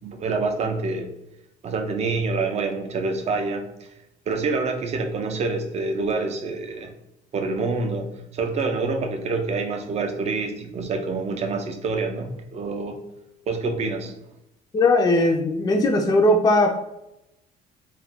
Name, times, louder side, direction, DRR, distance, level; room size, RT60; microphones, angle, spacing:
voice 1, 0.0-1.1 1.6-3.7 4.3-6.9 7.3-13.0 13.5-14.2, right 3 dB, 40° right, 6 dB, 0.4 m, -26 dB
voice 2, 14.7-16.7, left 2 dB, 25° left, 2 dB, 0.4 m, -18 dB
2.3 x 2.1 x 3.4 m, 0.88 s
cardioid pair, 110°, 17 cm